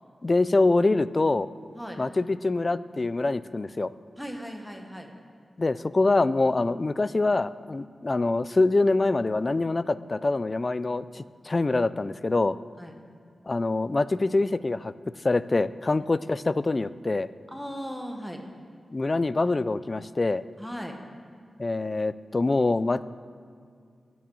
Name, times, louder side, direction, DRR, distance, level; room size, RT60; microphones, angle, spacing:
voice 1, 0.2-1.5 2.0-3.9 5.6-12.6 13.5-14.9 15.2-17.3 18.9-20.4 21.6-23.0, left 2 dB, 35° left, 16 dB, 0.3 m, -25 dB
voice 2, 4.2-5.1 12.8-12.9 17.5-18.4 20.6-21.0, equal, ahead, 3 dB, 1.2 m, -37 dB
10.5 x 6.2 x 8.4 m, 2.2 s
wide cardioid pair, 110°, 0 cm